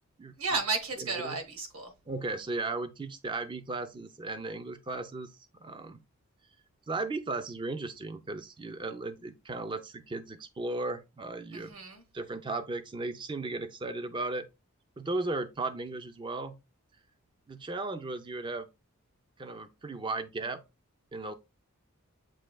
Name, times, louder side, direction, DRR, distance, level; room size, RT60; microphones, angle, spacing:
voice 1, 0.4-1.9 11.5-12.0, right 3 dB, 80° right, 1.2 m, -33 dB
voice 2, 1.0-1.4 2.1-5.3 5.6-6.0 6.9-11.7 12.1-14.4 15.0-16.6 17.5-18.7 19.4-20.6 21.1-21.3, right 2 dB, 20° right, 0.4 m, -36 dB
7.5 x 2.7 x 2.2 m
head